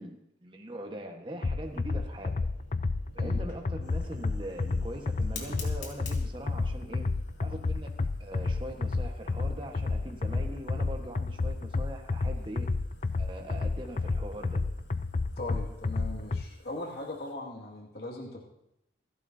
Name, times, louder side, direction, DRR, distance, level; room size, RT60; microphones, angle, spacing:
voice 1, 0.0-2.5 3.1-7.1 7.4-7.9 8.2-12.7 13.2-14.6, right 1 dB, 25° right, 2 dB, 1.4 m, -41 dB
sound 1, 1.4-16.4, left 3 dB, 40° left, 0.4 m, -31 dB
Fire, 1.6-17.3, left 4 dB, 85° left, 2.6 m, -52 dB
voice 2, 15.4-18.4, left 2 dB, 60° left, -1 dB, 2.3 m, -39 dB
27.0 x 11.0 x 2.8 m, 0.83 s
head